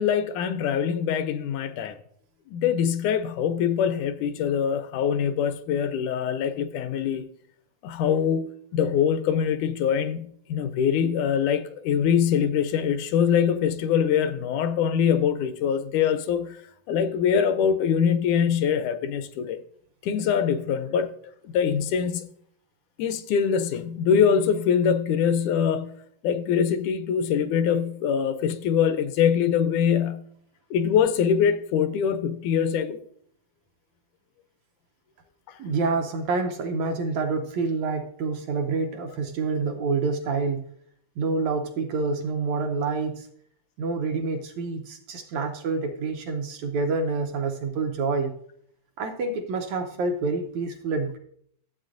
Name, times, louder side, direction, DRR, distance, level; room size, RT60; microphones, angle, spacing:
voice 1, 0.0-2.0 2.5-7.2 7.8-16.6 16.9-19.6 20.0-21.1 21.4-22.3 23.0-26.0 26.2-30.3 30.7-33.0 35.5-35.6, left 7 dB, 80° left, 1.9 m, -23 dB
voice 2, 35.6-40.6 41.2-43.3 43.8-48.3 49.0-51.2, right 4 dB, 75° right, 1.8 m, -27 dB
12.5 x 7.8 x 2.5 m
omnidirectional pair, 3.6 m